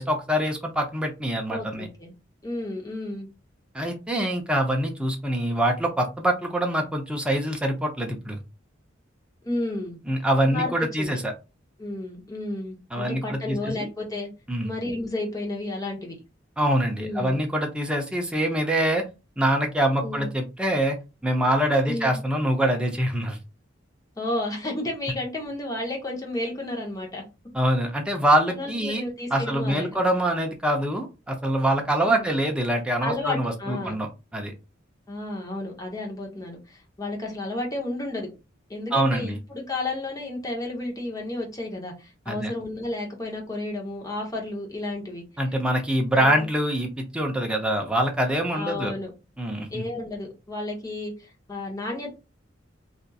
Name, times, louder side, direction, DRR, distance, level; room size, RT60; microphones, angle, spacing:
voice 1, 0.0-1.9 3.7-8.4 10.1-11.3 12.9-13.9 14.5-14.7 16.6-19.0 19.4-21.0 21.2-23.4 27.5-29.0 29.3-34.5 38.9-39.4 42.3-42.5 45.4-48.9 49.4-49.8, right 1 dB, 5° right, 2 dB, 0.5 m, -24 dB
voice 2, 1.5-2.1 2.4-3.3 9.4-10.0 10.4-10.7 11.0-11.2 11.8-14.3 14.6-16.2 17.0-17.4 20.0-20.3 21.9-22.2 24.2-27.2 28.5-30.0 32.0-32.3 33.0-34.0 35.1-38.3 38.7-45.2 46.1-46.5 48.5-49.1 49.7-52.1, left 2 dB, 20° left, 0 dB, 0.8 m, -32 dB
2.9 x 2.5 x 2.3 m, 0.28 s
head